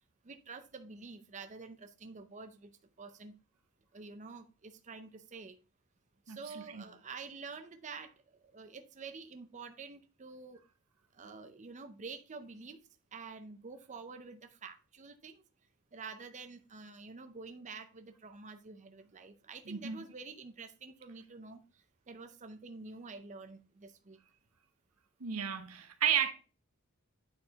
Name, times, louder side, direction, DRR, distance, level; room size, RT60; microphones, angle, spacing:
voice 1, 0.2-2.7 3.0-3.3 3.9-5.6 6.3-8.1 8.4-10.6 11.2-12.8 13.1-15.4 15.9-21.6 22.1-24.2, right 4 dB, 35° right, 0.6 m, -48 dB
voice 2, 6.3-6.8 19.7-20.0 25.2-26.3, right 9 dB, 85° right, 1.1 m, -33 dB
8.9 x 4.7 x 3.5 m
head